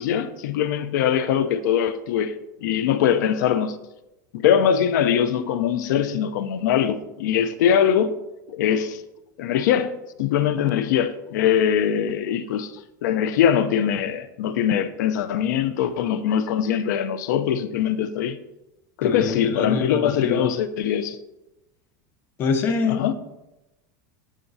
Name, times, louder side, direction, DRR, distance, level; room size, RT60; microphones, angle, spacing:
voice 1, 0.0-2.3 2.6-3.8 4.3-8.1 8.5-9.0 9.4-18.4 19.0-21.2 22.9-23.1, left 9 dB, 85° left, 0.6 m, -22 dB
voice 2, 19.0-20.5 22.4-23.0, left 4 dB, 25° left, 0.5 m, -25 dB
14.0 x 5.0 x 2.7 m
supercardioid pair, 180°, 10 cm